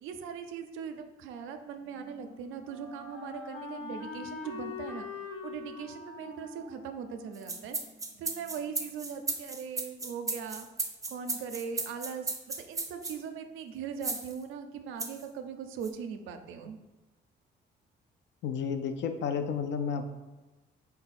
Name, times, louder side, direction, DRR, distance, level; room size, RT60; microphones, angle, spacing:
voice 1, 0.0-5.1 5.4-7.8 8.2-10.7 11.1-16.8, right 6 dB, 90° right, 7 dB, 0.4 m, -40 dB
Wind instrument woodwind instrument, 1.7-8.6, left 4 dB, 85° left, 1.1 m, -44 dB
sound 1, 7.3-13.2 14.0-14.3 15.0-15.2 15.8-15.9, right 3 dB, 15° right, 0.5 m, -35 dB
voice 2, 18.4-20.0, left 6 dB, 65° left, 8 dB, 0.5 m, -31 dB
4.6 x 2.2 x 4.1 m, 1.1 s
cardioid pair, 90°, 20 cm